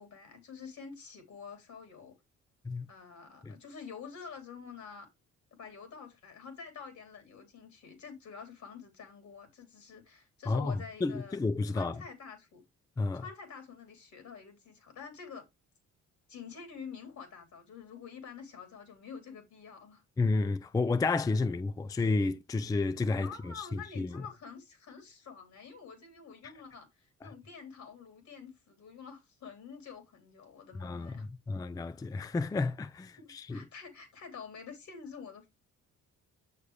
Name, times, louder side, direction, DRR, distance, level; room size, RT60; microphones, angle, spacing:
voice 1, 0.0-2.2 2.9-5.1 5.6-11.4 11.6-12.6 13.1-15.5 16.3-20.0 23.2-31.3 33.2-35.5, left 6 dB, 70° left, 3.5 m, -48 dB
voice 2, 10.5-12.0 13.0-13.2 20.2-24.2 30.8-33.6, left 3 dB, 10° left, 0.4 m, -31 dB
6.9 x 6.6 x 3.3 m
cardioid pair, 90°, 30 cm